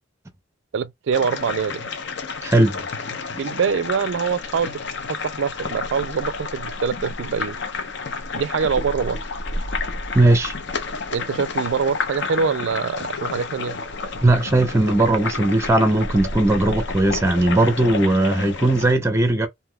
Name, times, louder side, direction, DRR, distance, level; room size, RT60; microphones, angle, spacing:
voice 1, 0.7-1.9 3.3-4.7 5.1-7.6 8.3-9.2 11.1-13.8, right 6 dB, 60° right, 0.3 m, -24 dB
sound 1, 1.1-18.9, left 3 dB, 60° left, 0.6 m, -30 dB
voice 2, 2.4-2.8 10.1-10.5 14.2-19.5, right 2 dB, 15° right, 0.6 m, -18 dB
3.4 x 2.7 x 2.2 m
head